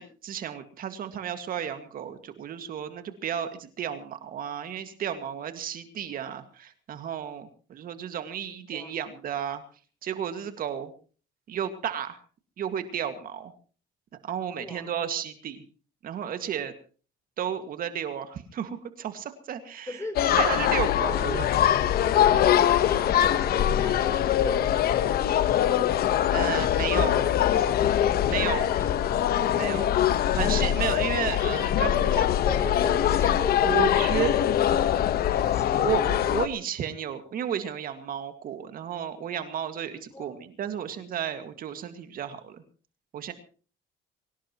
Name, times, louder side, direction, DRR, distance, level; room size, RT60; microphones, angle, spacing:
voice 1, 0.0-9.6 10.0-10.9 11.5-12.2 12.6-13.5 14.2-15.6 16.0-16.7 17.4-20.0 20.4-21.6 26.3-27.3 28.3-28.8 29.5-29.9 30.4-32.3 33.6-34.3 35.8-42.6 43.1-43.3, right 9 dB, 55° right, 8 dB, 2.0 m, -33 dB
voice 2, 14.6-14.9 19.9-20.3 21.1-21.4 22.1-25.1 28.8-28.9 32.4-36.0 40.1-40.4, left 2 dB, 15° left, 8 dB, 3.6 m, -38 dB
sound 1, 20.2-36.5, left 11 dB, 65° left, 1.2 m, -23 dB
23.5 x 18.0 x 3.0 m, 0.41 s
cardioid pair, 110°, 17 cm